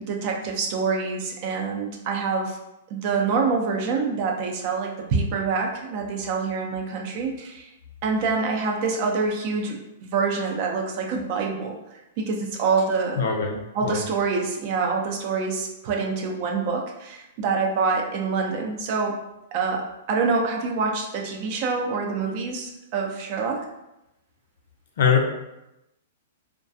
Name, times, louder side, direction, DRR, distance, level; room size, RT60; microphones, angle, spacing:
voice 1, 0.0-2.6 2.9-7.7 8.0-13.2 13.7-19.2 19.5-23.6, right 4 dB, 45° right, 1 dB, 0.5 m, -26 dB
voice 2, 13.2-14.0 25.0-25.3, left 6 dB, 75° left, 1 dB, 0.6 m, -22 dB
2.4 x 2.2 x 2.6 m, 0.92 s
hypercardioid pair, 135°, 0 cm